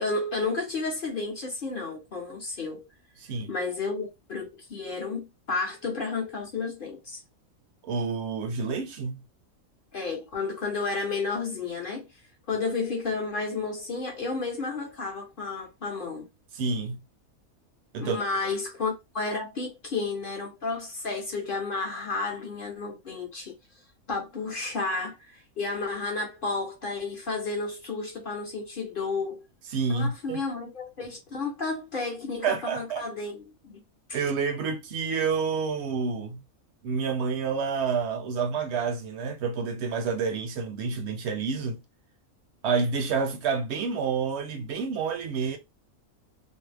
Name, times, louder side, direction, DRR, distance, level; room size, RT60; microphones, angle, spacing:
voice 1, 0.0-2.9 3.5-7.2 9.9-12.1 12.5-16.3 18.0-23.5 24.1-29.4 29.9-33.8 34.1-34.2, left 3 dB, 50° left, 0.7 m, -32 dB
voice 2, 7.8-9.2 16.5-17.0 17.9-18.2 29.7-30.4 32.4-33.0 34.1-36.4 36.8-41.8 42.6-45.6, right 5 dB, 65° right, 0.7 m, -28 dB
2.5 x 2.0 x 3.2 m
omnidirectional pair, 1.5 m